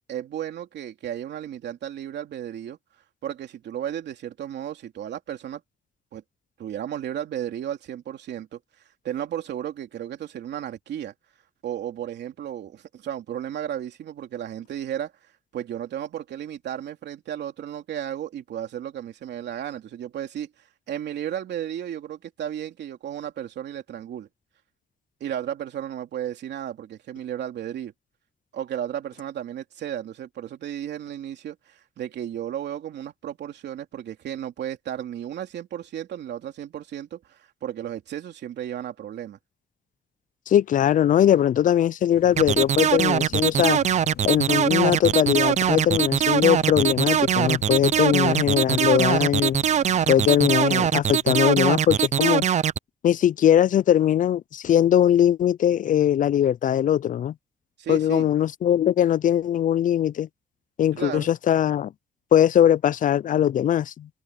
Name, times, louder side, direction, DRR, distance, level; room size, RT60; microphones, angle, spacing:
voice 1, 0.1-2.8 3.2-5.6 6.1-6.2 6.6-8.6 9.0-11.1 11.6-15.1 15.5-20.5 20.9-24.3 25.2-27.9 28.5-39.4 57.8-58.3 60.9-61.3, right 10 dB, 85° right, 3.1 m, -34 dB
voice 2, 40.5-43.8 44.2-49.6 50.1-52.4 53.0-57.3 57.9-60.3 60.8-61.9 62.3-64.1, left 10 dB, 50° left, 0.4 m, -20 dB
sound 1, 42.1-50.6, left 10 dB, 65° left, 0.9 m, -44 dB
sound 2, 42.4-52.8, right 9 dB, 45° right, 0.4 m, -22 dB
wide cardioid pair, 140°, 17 cm